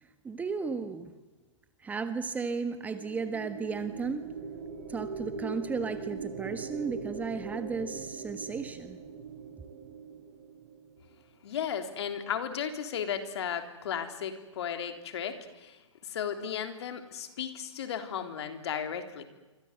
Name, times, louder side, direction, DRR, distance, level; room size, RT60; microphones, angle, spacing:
voice 1, 0.2-1.1 1.8-4.2 4.9-9.0, right 5 dB, 10° right, 10 dB, 1.3 m, -34 dB
sound 1, 2.7-11.2, right 5 dB, 35° right, 5.4 m, -41 dB
voice 2, 11.4-19.2, left 8 dB, 55° left, 7 dB, 3.6 m, -35 dB
27.5 x 25.0 x 8.1 m, 1.2 s
hypercardioid pair, 140°, 16 cm